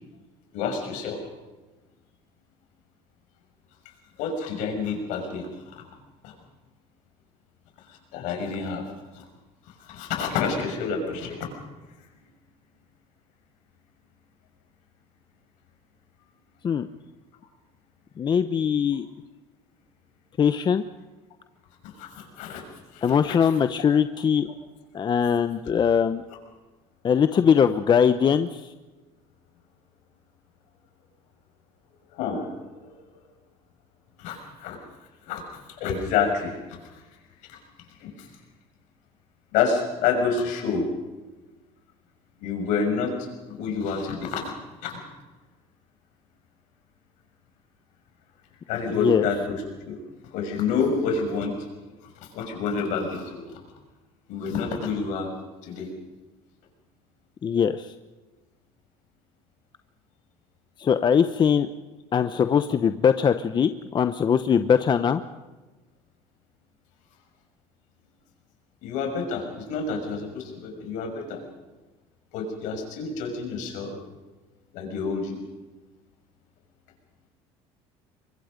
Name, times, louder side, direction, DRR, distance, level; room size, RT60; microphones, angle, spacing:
voice 1, 0.5-1.2 4.2-5.7 6.2-6.3 7.9-8.8 9.1-9.2 9.9-11.5 21.8-22.6 22.9-23.4 32.1-33.0 34.2-34.8 35.3-36.5 36.9-37.0 37.5-37.6 38.0-38.3 39.5-40.9 42.4-43.1 43.5-44.5 44.8-45.0 48.7-50.0 50.3-51.5 52.3-53.4 54.3-55.3 55.6-55.9 68.8-71.4 72.3-74.0 74.7-75.4, left 5 dB, 75° left, 3 dB, 6.4 m, -28 dB
voice 2, 18.2-19.1 20.4-20.8 23.0-24.5 24.9-26.2 27.0-28.7 48.9-49.3 57.4-57.9 60.8-61.7 62.1-65.2, left 7 dB, 35° left, 10 dB, 0.9 m, -21 dB
24.0 x 22.0 x 5.3 m, 1.2 s
supercardioid pair, 100°, 13 cm